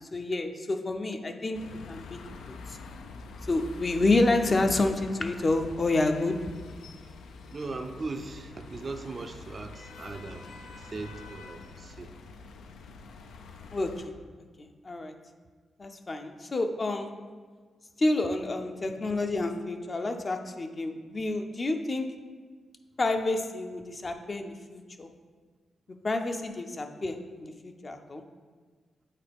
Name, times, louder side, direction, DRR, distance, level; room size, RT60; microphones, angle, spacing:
voice 1, 0.0-1.6 1.9-2.2 2.7-2.8 3.5-6.4 13.7-14.1 14.6-15.1 15.8-17.1 18.0-22.1 23.0-25.1 26.0-28.2, left 2 dB, 35° left, 5 dB, 0.5 m, -29 dB
sound 1, 1.5-14.1, left 4 dB, 90° left, 0.4 m, -45 dB
voice 2, 7.5-12.1, right 3 dB, 40° right, 6 dB, 0.4 m, -39 dB
8.3 x 4.2 x 3.5 m, 1.5 s
cardioid pair, 85°, 0 cm